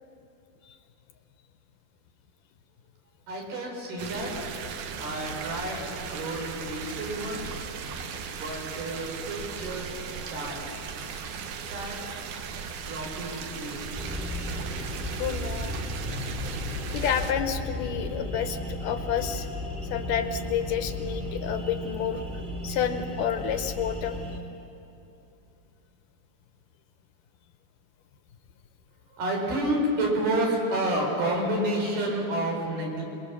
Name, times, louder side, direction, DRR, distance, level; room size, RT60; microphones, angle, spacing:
voice 1, 3.3-4.5 5.0-7.6 8.3-9.9 10.1-10.7 11.6-12.0 12.9-14.0 29.1-33.0, right 1 dB, 90° right, -1 dB, 6.4 m, -30 dB
sound 1, 4.0-17.3, right 6 dB, 65° right, 2.3 m, -37 dB
sound 2, 14.0-24.4, left 1 dB, 15° right, 2.0 m, -35 dB
voice 2, 15.2-15.8 16.9-19.5 19.9-22.2 22.6-24.2, left 8 dB, 70° left, 7 dB, 2.3 m, -29 dB
27.5 x 21.5 x 7.1 m, 2.8 s
omnidirectional pair, 4.3 m